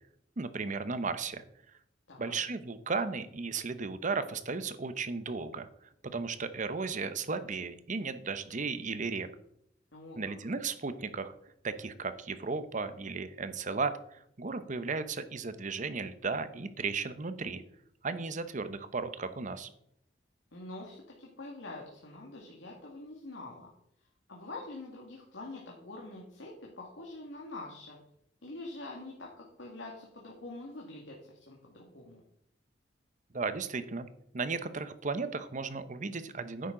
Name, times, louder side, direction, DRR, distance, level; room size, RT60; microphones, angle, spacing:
voice 1, 0.4-1.4 2.2-5.7 6.1-9.3 10.2-11.3 11.6-17.6 18.0-19.7 33.3-34.1 34.3-36.7, right 4 dB, 40° right, 11 dB, 0.8 m, -35 dB
voice 2, 9.9-10.3 20.5-23.7 24.3-28.0 28.4-32.2, left 2 dB, 80° left, -1 dB, 1.9 m, -45 dB
10.5 x 8.5 x 3.8 m, 0.73 s
head